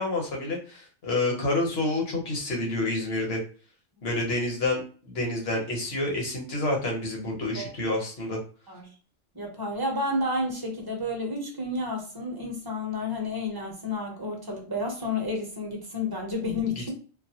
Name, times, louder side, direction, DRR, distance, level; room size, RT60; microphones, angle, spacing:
voice 1, 0.0-3.4 4.0-8.4 16.7-16.9, left 2 dB, 55° left, 0 dB, 1.2 m, -28 dB
voice 2, 9.3-16.9, left 2 dB, 20° right, 0 dB, 0.8 m, -31 dB
4.0 x 2.1 x 2.9 m, 0.39 s
omnidirectional pair, 1.4 m